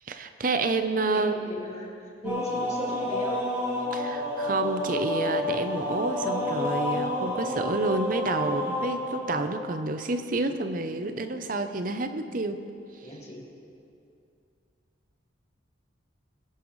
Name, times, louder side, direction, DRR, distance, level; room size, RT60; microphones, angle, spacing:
voice 1, 0.1-1.4 2.2-2.4 3.9-12.6, right 2 dB, 45° right, 9 dB, 0.7 m, -29 dB
voice 2, 1.1-3.5 13.0-13.5, left 1 dB, 35° left, -3 dB, 2.3 m, -37 dB
sound 1, 2.2-9.9, left 1 dB, 15° right, 3.7 m, -30 dB
22.0 x 11.0 x 3.2 m, 2.6 s
head